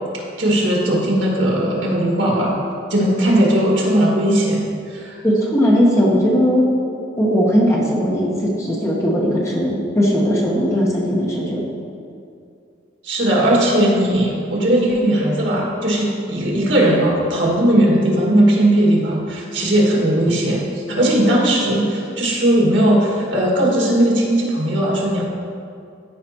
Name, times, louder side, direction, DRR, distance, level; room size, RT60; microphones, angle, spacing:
voice 1, 0.4-2.6 2.9-5.2 13.0-25.2, right 1 dB, 70° right, -4 dB, 2.0 m, -18 dB
voice 2, 5.2-6.7 7.2-11.6, equal, 15° left, -4 dB, 1.1 m, -18 dB
14.0 x 5.0 x 3.0 m, 2.4 s
head